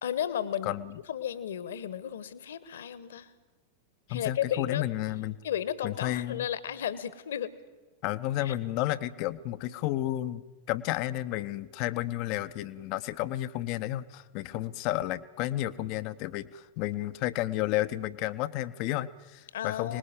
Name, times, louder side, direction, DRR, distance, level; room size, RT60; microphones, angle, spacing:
voice 1, 0.0-0.7 1.1-3.3 4.1-4.8 5.4-7.5 8.4-8.5 19.5-20.0, left 10 dB, 60° left, 16 dB, 1.3 m, -33 dB
voice 2, 0.6-1.0 4.1-5.4 5.8-6.5 8.0-20.0, left 15 dB, 45° left, 14 dB, 0.7 m, -32 dB
25.0 x 20.0 x 7.6 m, 1.2 s
figure-of-eight pair, 90°, 0 cm